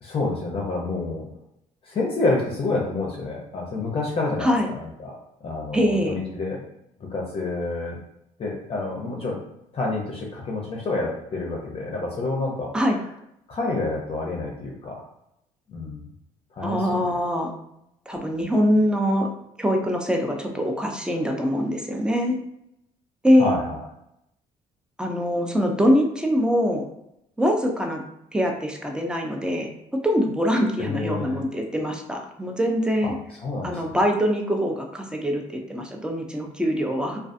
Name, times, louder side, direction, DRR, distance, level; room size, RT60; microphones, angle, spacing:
voice 1, 0.0-1.3 1.8-6.6 7.0-8.0 8.4-9.4 9.7-12.7 13.5-15.0 15.7-16.1 16.5-17.2 23.4-23.8 30.8-31.4 33.0-33.1 33.4-34.0, left 3 dB, 40° left, -1 dB, 0.6 m, -28 dB
voice 2, 5.7-6.1 12.7-13.0 16.6-17.5 18.1-19.3 19.6-22.4 23.2-23.6 25.0-26.8 27.4-28.0 28.3-29.7 30.0-33.1 33.6-37.2, equal, 5° right, 2 dB, 0.5 m, -23 dB
2.3 x 2.3 x 2.5 m, 0.81 s
supercardioid pair, 80°, 15 cm